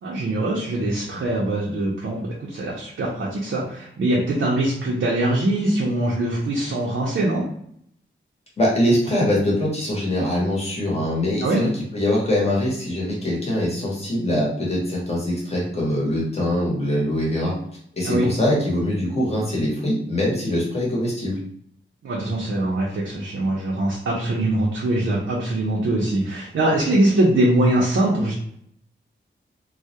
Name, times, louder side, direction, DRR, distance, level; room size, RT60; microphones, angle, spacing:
voice 1, 0.0-7.4 11.4-11.6 18.0-18.3 22.0-28.3, right 1 dB, 80° right, -4 dB, 0.5 m, -22 dB
voice 2, 8.6-17.5 18.0-21.4, left 1 dB, 30° left, -4 dB, 0.9 m, -23 dB
2.2 x 2.0 x 2.7 m, 0.69 s
wide cardioid pair, 155°, 20 cm